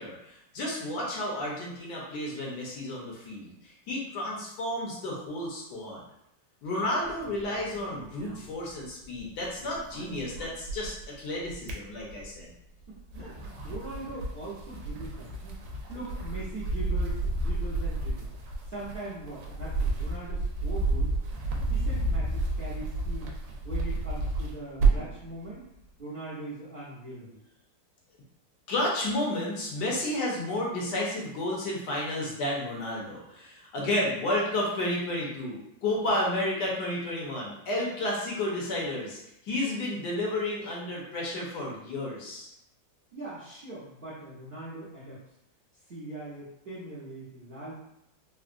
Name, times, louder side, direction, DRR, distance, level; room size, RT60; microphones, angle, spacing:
voice 1, 0.0-6.0 6.6-12.5 28.7-42.5, left 1 dB, 70° left, -3 dB, 1.3 m, -32 dB
sound 1, 7.0-9.2 9.5-11.1 11.4-12.5 13.0-25.2, right 2 dB, 75° right, 1.2 m, -31 dB
voice 2, 12.9-18.3 18.7-21.1 21.5-23.3 23.6-25.6 26.0-27.4 43.1-45.2 45.9-47.7, right 2 dB, 55° right, -8 dB, 0.6 m, -41 dB
3.6 x 2.1 x 2.4 m, 0.81 s
omnidirectional pair, 2.0 m